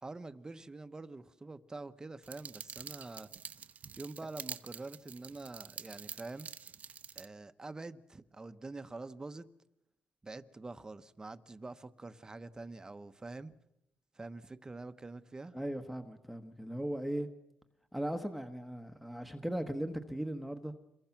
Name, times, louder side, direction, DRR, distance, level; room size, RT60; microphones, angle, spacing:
voice 1, 0.0-3.3 4.0-6.5 7.1-9.5 10.2-13.5 14.1-15.5, right 3 dB, 20° right, 1.1 m, -46 dB
sound 1, 2.2-7.3, right 7 dB, 45° right, 0.9 m, -47 dB
voice 2, 15.5-17.3 17.9-20.7, right 1 dB, ahead, 1.3 m, -38 dB
27.5 x 22.5 x 6.0 m
cardioid pair, 110°, 4 cm